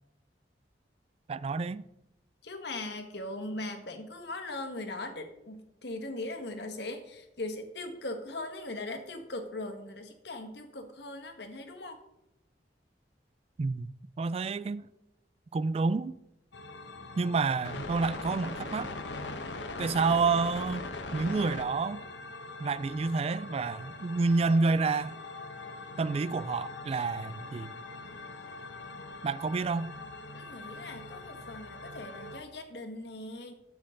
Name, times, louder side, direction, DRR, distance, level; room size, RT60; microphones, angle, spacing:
voice 1, 1.3-1.8 13.6-13.9 14.2-14.9 15.5-16.2 17.2-19.0 19.8-20.9 21.1-22.1 22.6-25.2 26.0-27.7 29.2-29.9, right 4 dB, 35° right, 0.3 m, -29 dB
voice 2, 2.4-12.0 30.3-33.5, left 2 dB, 65° left, 1.5 m, -39 dB
sound 1, 16.5-32.4, left 3 dB, 80° left, 1.2 m, -42 dB
13.0 x 8.6 x 3.8 m
head